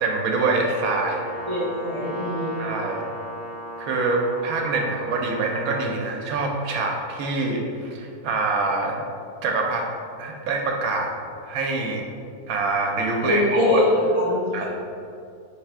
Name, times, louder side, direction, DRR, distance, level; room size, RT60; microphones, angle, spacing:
voice 1, 0.0-1.2 2.6-3.1 3.8-9.0 9.4-9.9 10.2-11.1 11.4-12.0 12.5-13.9 14.5-14.7, right 3 dB, 75° right, 1 dB, 1.0 m, -25 dB
Brass instrument, 0.6-5.9, right 1 dB, 90° left, 1.4 m, -36 dB
voice 2, 1.5-2.5 13.2-14.7, left 1 dB, 50° left, -6 dB, 1.3 m, -22 dB
3.2 x 3.2 x 4.7 m, 2.4 s
omnidirectional pair, 1.6 m